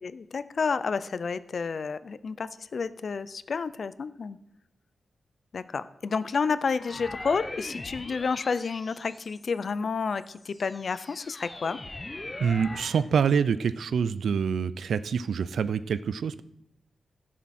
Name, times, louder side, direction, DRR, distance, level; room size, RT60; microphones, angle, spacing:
voice 1, 0.0-4.4 5.5-11.8, left 5 dB, 45° left, 15 dB, 0.5 m, -30 dB
sound 1, 6.7-9.6 10.2-13.1, left 2 dB, 15° left, 0.8 m, -41 dB
voice 2, 12.4-16.4, right 6 dB, 75° right, 15 dB, 0.4 m, -26 dB
16.0 x 7.3 x 4.3 m, 0.84 s
wide cardioid pair, 180°, 0 cm